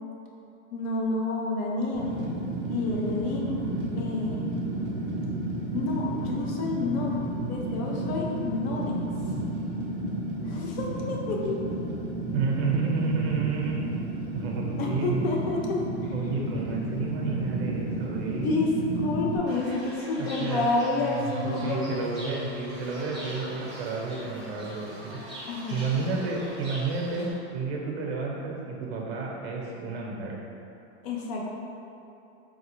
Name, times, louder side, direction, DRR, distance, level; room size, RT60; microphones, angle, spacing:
voice 1, 0.7-2.1 2.6-3.7 3.9-4.4 5.7-7.2 7.5-9.0 10.5-11.6 14.8-16.1 18.4-21.8 25.5-25.8 31.0-31.4, left 3 dB, 60° left, -2 dB, 0.6 m, -29 dB
Fire, 1.9-19.4, right 1 dB, 25° right, 0.3 m, -32 dB
voice 2, 12.3-13.9 14.3-15.4 16.1-18.6 20.2-20.7 21.4-25.2 25.7-30.4, right 4 dB, 60° right, -2 dB, 0.8 m, -31 dB
Fowl / Bird, 19.5-27.3, right 1 dB, ahead, 0.9 m, -40 dB
4.5 x 2.3 x 2.9 m, 2.7 s
supercardioid pair, 165°, 35 cm